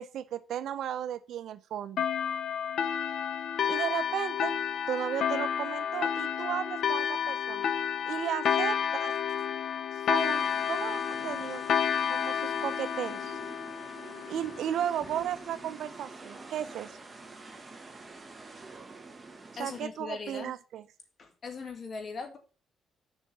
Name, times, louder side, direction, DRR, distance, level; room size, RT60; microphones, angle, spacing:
voice 1, 0.0-2.1 3.7-4.5 4.9-7.7 8.1-9.1 10.1-11.6 12.1-13.4 14.3-16.9 19.6-20.8, right 10 dB, 75° right, 13 dB, 0.8 m, -35 dB
sound 1, 2.0-15.1, left 8 dB, 65° left, 1.0 m, -30 dB
sound 2, 10.1-19.8, right 3 dB, 20° right, 1.6 m, -47 dB
voice 2, 19.6-20.5 21.2-22.4, left 4 dB, 40° left, 5 dB, 2.5 m, -39 dB
7.1 x 5.6 x 7.2 m, 0.36 s
cardioid pair, 115°, 0 cm